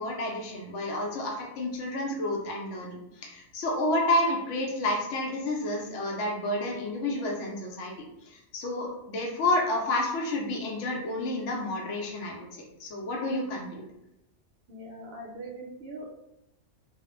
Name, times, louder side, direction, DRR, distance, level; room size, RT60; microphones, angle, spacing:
voice 1, 0.0-7.9 8.2-13.8, left 1 dB, 85° left, -1 dB, 0.9 m, -30 dB
voice 2, 14.7-16.1, right 1 dB, 60° right, -2 dB, 0.7 m, -41 dB
2.3 x 2.0 x 3.0 m, 0.85 s
omnidirectional pair, 1.2 m